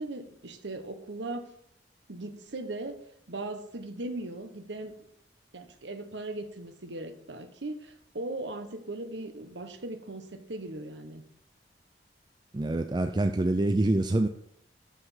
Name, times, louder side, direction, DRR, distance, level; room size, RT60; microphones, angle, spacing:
voice 1, 0.0-1.4 2.1-3.0 3.3-4.9 5.5-11.2, right 2 dB, 85° right, 7 dB, 1.3 m, -38 dB
voice 2, 12.5-14.3, right 2 dB, 25° right, 7 dB, 0.5 m, -26 dB
12.5 x 5.1 x 5.7 m, 0.71 s
head